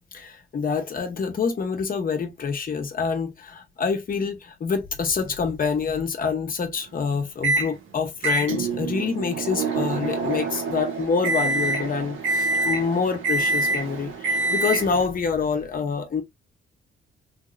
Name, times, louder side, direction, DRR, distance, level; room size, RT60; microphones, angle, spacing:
voice 1, 0.1-16.2, left 5 dB, 45° left, 1.1 m, -26 dB
Microwave oven, 7.4-7.7 8.2-15.1, right 3 dB, 80° right, 1.1 m, -26 dB
3.4 x 3.0 x 2.4 m
cardioid pair, 90°, 20 cm